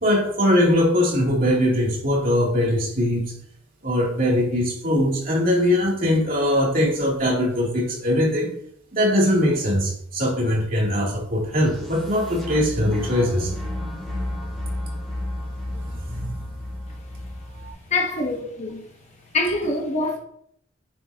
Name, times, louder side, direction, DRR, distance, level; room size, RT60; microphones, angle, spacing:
voice 1, 0.0-3.3 3.8-8.5 8.9-13.5 15.7-16.5, left 1 dB, 45° right, 3.0 m, -21 dB
sound 1, 11.5-17.7, left 1 dB, ahead, 3.9 m, -32 dB
voice 2, 17.9-18.8 19.3-20.2, left 2 dB, 35° left, 1.2 m, -24 dB
9.9 x 7.3 x 2.9 m
head